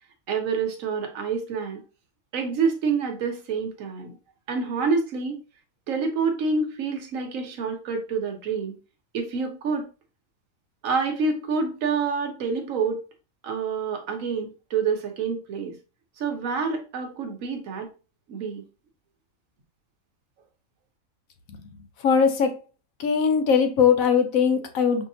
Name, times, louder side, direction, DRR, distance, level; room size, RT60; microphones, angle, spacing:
voice 1, 0.3-1.8 2.3-4.1 4.5-5.4 5.9-8.7 9.1-9.8 10.8-13.0 13.4-15.7 16.2-17.9 18.3-18.6, right 5 dB, 65° right, 3 dB, 1.2 m, -27 dB
voice 2, 22.0-22.5 23.0-25.1, left 6 dB, 70° left, 6 dB, 1.1 m, -20 dB
5.6 x 2.8 x 2.7 m, 0.33 s
omnidirectional pair, 1.5 m